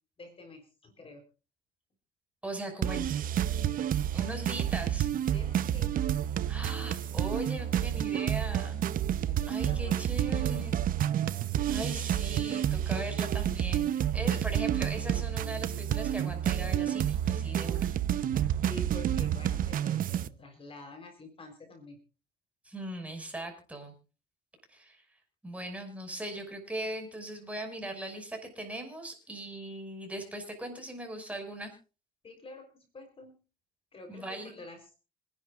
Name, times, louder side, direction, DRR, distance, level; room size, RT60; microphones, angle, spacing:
voice 1, 0.2-1.2 5.3-5.9 9.3-10.1 18.7-22.0 32.2-33.4 33.9-35.0, left 1 dB, 35° left, 6 dB, 3.9 m, -47 dB
voice 2, 2.4-3.1 4.1-5.1 6.5-8.8 9.5-10.7 11.7-17.9 22.6-23.9 24.7-25.1 25.4-31.7 34.1-34.5, right 1 dB, 10° right, 4 dB, 5.8 m, -39 dB
sound 1, 2.8-20.3, right 10 dB, 55° right, 0.8 m, -29 dB
26.5 x 11.0 x 2.5 m, 0.34 s
cardioid pair, 110°, 17 cm